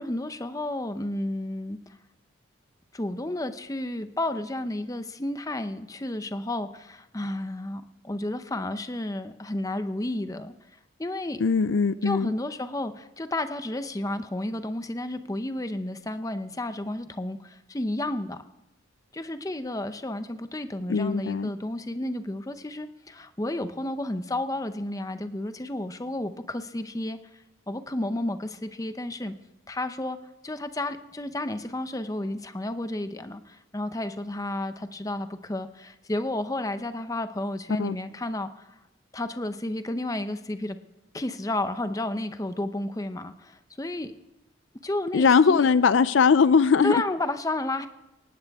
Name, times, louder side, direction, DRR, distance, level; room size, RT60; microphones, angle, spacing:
voice 1, 0.0-2.0 2.9-10.5 11.0-11.4 12.0-18.4 19.1-27.2 27.7-29.3 29.7-30.2 30.4-38.8 39.1-40.8 41.1-44.1 44.8-45.7 46.8-47.9, left 1 dB, 15° left, 10 dB, 0.6 m, -32 dB
voice 2, 11.4-12.3 20.9-21.5 37.8-38.0 45.1-47.0, left 5 dB, 70° left, 16 dB, 0.4 m, -20 dB
18.5 x 15.0 x 3.5 m, 0.97 s
head